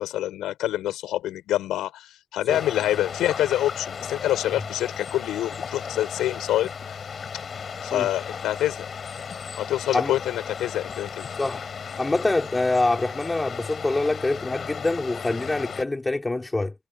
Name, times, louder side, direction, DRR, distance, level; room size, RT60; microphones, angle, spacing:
voice 1, 0.0-7.0 7.8-8.9 9.6-11.3, left 13 dB, 85° left, 6.1 m, -26 dB
sound 1, 2.5-15.8, left 6 dB, 45° left, 4.8 m, -35 dB
voice 2, 11.4-11.7 12.0-16.7, left 2 dB, 15° left, 3.2 m, -25 dB
cardioid pair, 90°, 0 cm